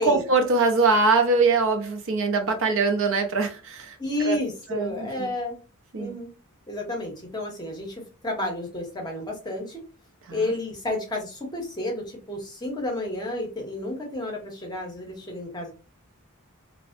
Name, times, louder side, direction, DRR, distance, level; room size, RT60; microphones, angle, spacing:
voice 1, 0.0-4.0 4.2-4.4 4.7-5.3 5.9-6.2 10.3-10.5, right 3 dB, 60° right, 0.5 m, -23 dB
voice 2, 4.0-5.5 6.0-6.3 6.7-7.9 8.2-9.6 10.3-15.7, left 2 dB, 20° left, 0.7 m, -31 dB
2.5 x 2.0 x 2.4 m
head